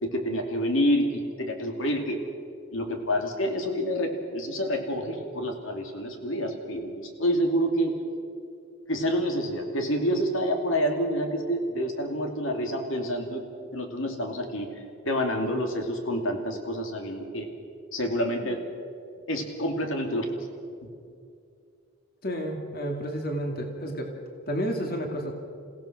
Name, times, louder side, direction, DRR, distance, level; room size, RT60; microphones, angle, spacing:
voice 1, 0.0-2.2 2.7-7.9 8.9-13.4 13.7-14.7 15.0-17.5 17.9-18.6 19.3-20.3, equal, 75° left, 3 dB, 2.6 m, -28 dB
voice 2, 22.2-24.1 24.5-25.3, equal, 45° left, 2 dB, 2.3 m, -31 dB
29.0 x 16.5 x 6.0 m, 2.4 s
head